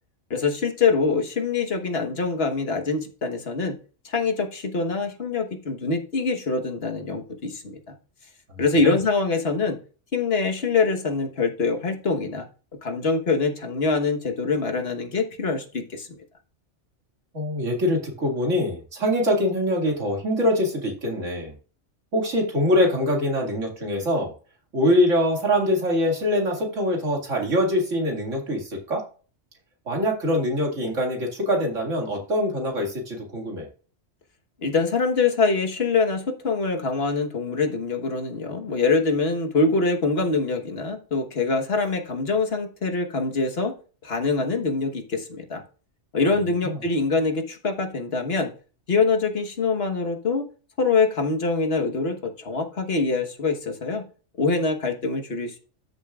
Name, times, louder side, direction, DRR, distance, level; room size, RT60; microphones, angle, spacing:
voice 1, 0.3-3.8 4.0-7.8 8.6-9.8 10.1-12.5 12.8-16.1 34.6-43.7 44.0-45.6 46.1-48.5 48.9-50.4 50.8-54.0 54.4-55.6, left 4 dB, 55° left, 5 dB, 1.5 m, -24 dB
voice 2, 17.3-21.5 22.1-24.3 24.7-29.1 29.9-33.7 46.6-46.8, left 1 dB, 90° right, 0 dB, 2.6 m, -23 dB
13.0 x 7.2 x 2.4 m, 0.38 s
omnidirectional pair, 1.2 m